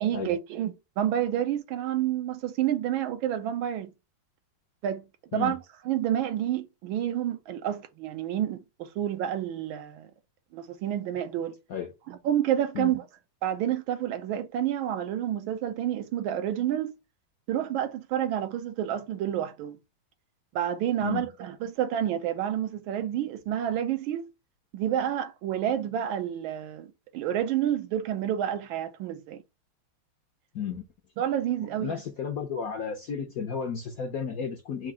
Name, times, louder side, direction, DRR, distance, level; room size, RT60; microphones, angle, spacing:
voice 1, 0.0-3.9 4.8-5.0 5.3-5.6 5.9-10.1 10.5-11.5 12.1-13.0 13.4-16.9 17.5-19.8 20.5-24.3 24.7-26.9 27.1-29.4 31.2-32.0, right 11 dB, 80° right, 1.4 m, -29 dB
voice 2, 30.5-30.8 31.6-34.9, left 6 dB, 70° left, 0.8 m, -33 dB
4.8 x 2.4 x 4.7 m
omnidirectional pair, 2.3 m